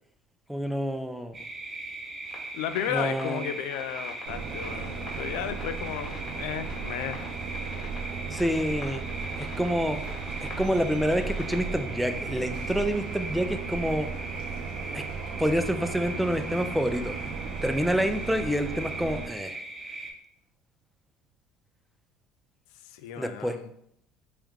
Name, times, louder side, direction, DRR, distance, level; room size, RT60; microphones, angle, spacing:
voice 1, 0.5-1.4 2.9-3.5 8.3-9.0 9.4-10.0 10.4-14.1 14.9-15.1 15.4-17.2 17.6-19.6 23.1-23.6, equal, 5° right, 8 dB, 0.4 m, -28 dB
sound 1, 1.3-20.1, right 2 dB, 30° right, 0.9 m, -39 dB
sound 2, 2.2-12.0, left 3 dB, 50° left, 1.0 m, -47 dB
voice 2, 2.5-7.2 22.8-23.7, left 10 dB, 75° left, 10 dB, 0.3 m, -34 dB
sound 3, 4.3-19.3, right 5 dB, 70° right, 0.6 m, -36 dB
3.5 x 2.9 x 3.5 m, 0.72 s
hypercardioid pair, 75°, 0 cm